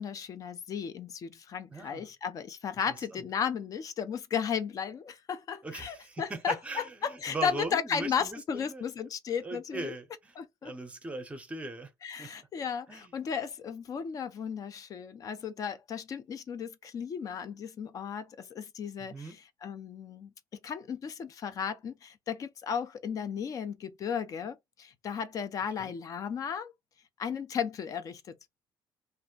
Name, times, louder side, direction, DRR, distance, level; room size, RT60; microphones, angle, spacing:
voice 1, 0.0-10.0 10.4-10.7 12.0-19.4 19.6-20.3 20.6-26.7 27.2-28.3, left 7 dB, 40° left, 0.4 m, -35 dB
voice 2, 1.7-2.1 2.9-3.2 5.6-8.8 9.4-10.4 10.6-11.9 12.2-12.3 12.9-13.1 19.0-19.4 25.8-25.9, right 3 dB, 15° right, 0.7 m, -40 dB
2.5 x 2.0 x 3.7 m
cardioid pair, 145°, 9 cm